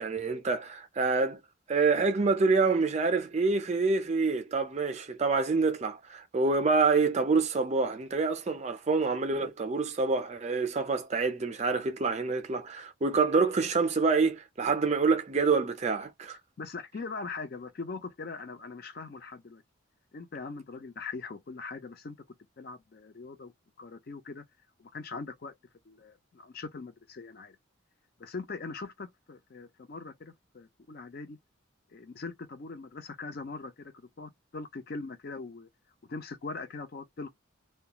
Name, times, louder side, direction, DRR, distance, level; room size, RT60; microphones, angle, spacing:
voice 1, 0.0-1.4 1.7-16.4, right 4 dB, 35° right, 0.4 m, -27 dB
voice 2, 16.6-19.6 20.1-22.1 22.6-23.5 23.8-24.4 24.8-25.5 25.9-27.6 28.2-31.4 31.9-35.7 36.0-37.3, left 4 dB, 45° left, 0.4 m, -41 dB
2.3 x 2.2 x 2.9 m
head